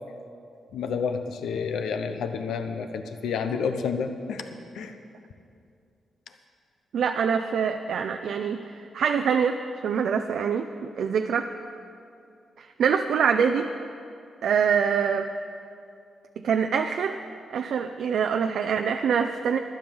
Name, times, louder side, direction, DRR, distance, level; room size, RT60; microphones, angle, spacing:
voice 1, 0.7-4.5 4.7-4.9, left 6 dB, 85° left, 7 dB, 0.8 m, -29 dB
voice 2, 6.9-9.6 9.8-10.7 11.0-11.5 12.6-13.7 14.4-15.3 16.4-17.2 17.5-19.6, right 7 dB, 75° right, 6 dB, 0.5 m, -24 dB
12.0 x 10.5 x 7.0 m, 2.5 s
cardioid pair, 75°, 0 cm